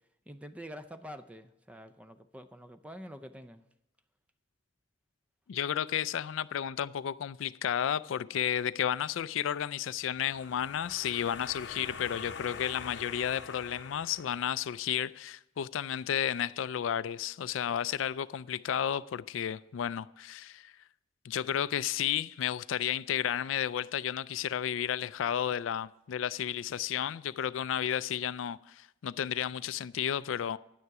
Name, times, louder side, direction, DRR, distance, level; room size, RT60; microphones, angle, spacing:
voice 1, 0.3-3.6, equal, 5° right, 0.4 m, -46 dB
voice 2, 5.5-20.7 21.2-30.6, left 9 dB, 85° left, 0.4 m, -32 dB
sound 1, 10.1-14.9, left 5 dB, 65° left, 0.7 m, -45 dB
11.0 x 9.5 x 4.8 m
head